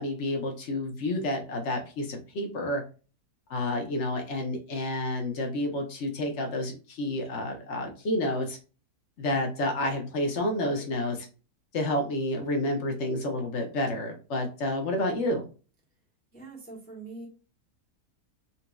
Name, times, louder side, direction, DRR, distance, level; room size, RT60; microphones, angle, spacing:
voice 1, 0.0-2.8 3.5-8.6 9.2-11.3 11.7-15.5, left 1 dB, 55° left, 3 dB, 1.0 m, -29 dB
voice 2, 16.3-17.3, right 3 dB, 5° left, -6 dB, 1.1 m, -43 dB
4.0 x 2.6 x 2.2 m, 0.35 s
omnidirectional pair, 1.6 m